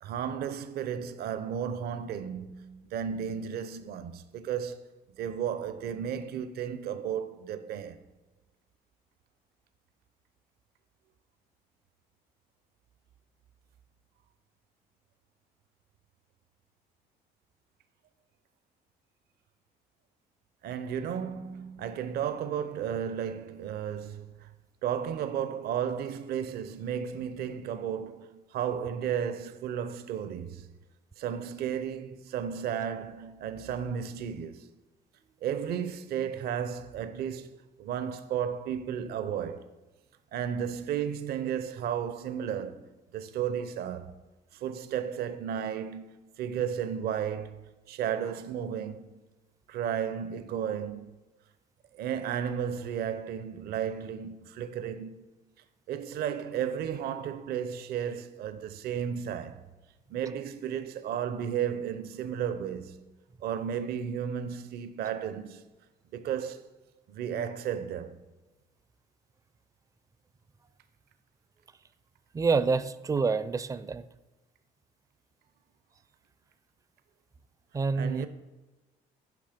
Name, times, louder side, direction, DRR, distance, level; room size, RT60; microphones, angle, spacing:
voice 1, 0.0-8.0 20.6-24.5 24.8-30.7 31.2-34.7 35.4-39.7 40.3-44.1 44.5-49.2 49.7-51.1 51.9-55.2 55.9-59.7 60.1-65.6 66.1-66.7 67.1-68.2 78.0-78.3, right 8 dB, 70° right, 0.7 m, -34 dB
voice 2, 72.3-74.1 77.7-78.3, right 4 dB, 20° right, 0.4 m, -27 dB
9.2 x 5.8 x 5.1 m
cardioid pair, 110°, 17 cm